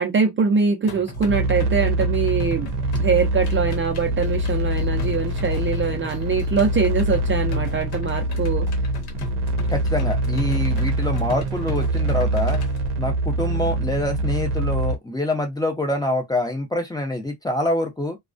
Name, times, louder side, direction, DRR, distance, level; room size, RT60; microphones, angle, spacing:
voice 1, 0.0-2.7 3.0-8.7, right 5 dB, 30° right, 0.5 m, -23 dB
sound 1, 0.9-12.9, left 1 dB, 70° left, 1.0 m, -36 dB
sound 2, 1.3-15.0, right 1 dB, 90° right, 0.6 m, -24 dB
voice 2, 9.7-12.6 13.0-18.2, left 1 dB, 10° left, 0.6 m, -25 dB
2.2 x 2.2 x 2.5 m
cardioid pair, 125°, 40 cm